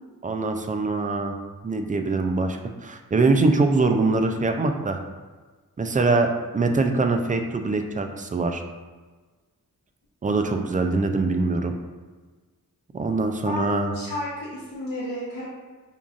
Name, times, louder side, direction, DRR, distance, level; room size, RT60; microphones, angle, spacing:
voice 1, 0.2-1.4 1.6-5.0 5.8-8.6 10.2-11.7 12.9-14.0, right 3 dB, 25° right, 5 dB, 0.3 m, -23 dB
voice 2, 13.4-15.5, left 1 dB, 70° left, -7 dB, 0.7 m, -32 dB
5.3 x 2.4 x 2.4 m, 1.3 s
wide cardioid pair, 70°, 34 cm